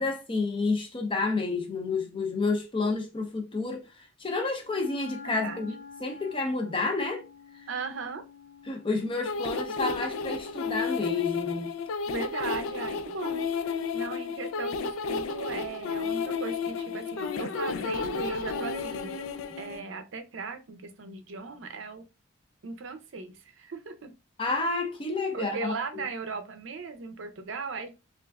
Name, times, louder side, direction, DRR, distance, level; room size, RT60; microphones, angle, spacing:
voice 1, 0.0-5.7 6.0-7.2 8.7-11.7 24.4-26.0, left 3 dB, 25° left, 0.5 m, -30 dB
Wind instrument woodwind instrument, 4.6-11.3, left 5 dB, 55° left, 0.8 m, -49 dB
voice 2, 5.2-5.7 7.7-8.2 12.1-13.5 13.9-19.2 19.6-22.0 22.6-24.1 25.3-27.9, right 4 dB, 65° right, 0.5 m, -37 dB
sound 1, 9.2-19.8, left 5 dB, 80° left, 0.3 m, -32 dB
3.3 x 2.5 x 2.3 m
head